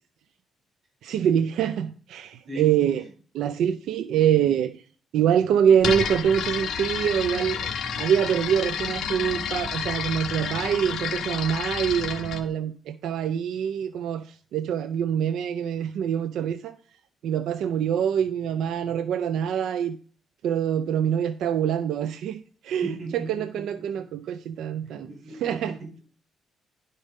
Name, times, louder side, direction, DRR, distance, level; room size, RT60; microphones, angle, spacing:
voice 1, 1.0-3.0 3.4-4.8 5.1-7.7 8.0-16.8 17.2-20.0 20.4-25.8, right 9 dB, 80° right, 10 dB, 0.4 m, -25 dB
voice 2, 2.5-3.0 22.8-23.6 24.0-24.1 24.9-26.0, right 2 dB, 45° right, 3 dB, 4.6 m, -37 dB
sound 1, 5.8-12.4, left 6 dB, 65° left, 1.4 m, -30 dB
11.0 x 5.3 x 5.3 m, 0.42 s
cardioid pair, 125°, 0 cm